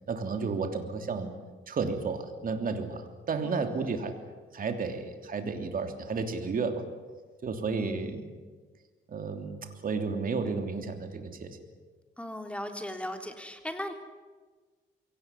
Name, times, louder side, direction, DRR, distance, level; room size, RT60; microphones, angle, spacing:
voice 1, 0.1-1.3 1.7-4.1 4.5-6.9 7.4-8.2 9.1-11.6, right 4 dB, 45° right, 6 dB, 3.1 m, -32 dB
voice 2, 3.4-4.0 7.8-8.3 12.2-13.9, left 1 dB, 5° left, 5 dB, 3.5 m, -38 dB
23.0 x 18.0 x 9.9 m, 1.4 s
cardioid pair, 90°, 20 cm